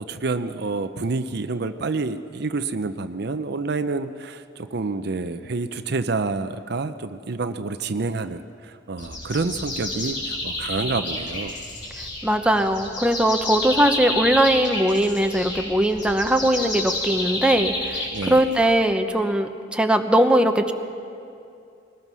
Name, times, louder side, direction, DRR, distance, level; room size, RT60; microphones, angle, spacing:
voice 1, 0.0-11.6 18.1-18.5, right 3 dB, 60° right, 10 dB, 0.6 m, -28 dB
sound 1, 9.0-18.8, left 1 dB, 70° left, 5.3 m, -30 dB
voice 2, 12.2-20.7, right 1 dB, 5° right, 5 dB, 0.9 m, -20 dB
21.5 x 20.0 x 6.2 m, 2.5 s
head